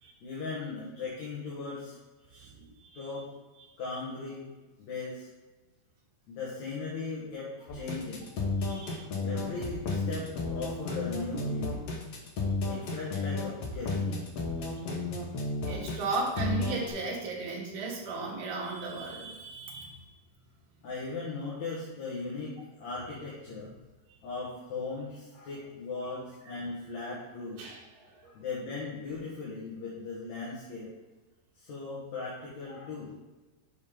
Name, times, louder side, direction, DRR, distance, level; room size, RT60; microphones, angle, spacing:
voice 1, 0.2-2.0 2.3-2.5 2.9-3.3 3.8-4.5 4.8-5.3 6.3-8.3 9.2-11.8 12.6-14.0 20.8-23.7 24.2-27.6 28.2-30.9 31.6-33.1, left 3 dB, 55° left, -6 dB, 2.4 m, -38 dB
voice 2, 2.3-3.1 8.6-9.0 15.6-20.0 24.1-24.2 27.6-28.3, right 3 dB, 65° right, -3 dB, 3.1 m, -36 dB
sound 1, 7.7-16.9, left 3 dB, 75° left, 1.4 m, -32 dB
7.1 x 5.4 x 5.1 m, 1.2 s
omnidirectional pair, 4.4 m